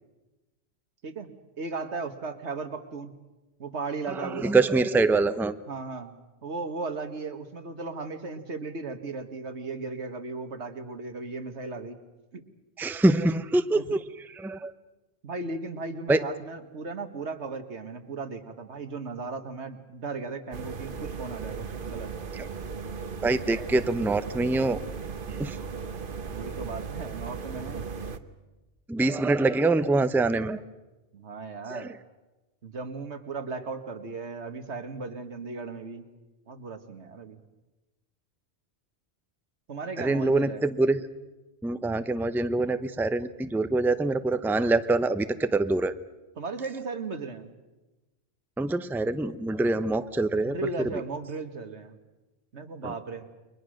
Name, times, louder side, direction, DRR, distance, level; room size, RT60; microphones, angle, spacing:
voice 1, 1.0-3.2 3.6-4.6 5.7-6.1 6.4-12.0 12.3-12.4 13.7-13.9 15.2-22.1 25.3-25.6 26.3-27.9 31.1-31.9 32.6-36.1 36.5-37.4 39.7-40.6 46.4-47.5 50.4-52.0 52.5-53.3, right 4 dB, 85° right, 8 dB, 1.9 m, -36 dB
voice 2, 4.1-5.5 12.8-14.7 16.1-16.2 22.3-22.5 23.2-24.8 25.4-25.7 28.9-30.6 31.7-31.9 40.0-41.0 41.6-45.9 48.6-50.6 50.9-51.0 52.8-52.9, right 2 dB, ahead, 11 dB, 0.6 m, -25 dB
sound 1, 20.5-28.2, right 5 dB, 50° right, 1.2 m, -37 dB
29.5 x 23.0 x 6.5 m, 1.1 s
omnidirectional pair, 1.1 m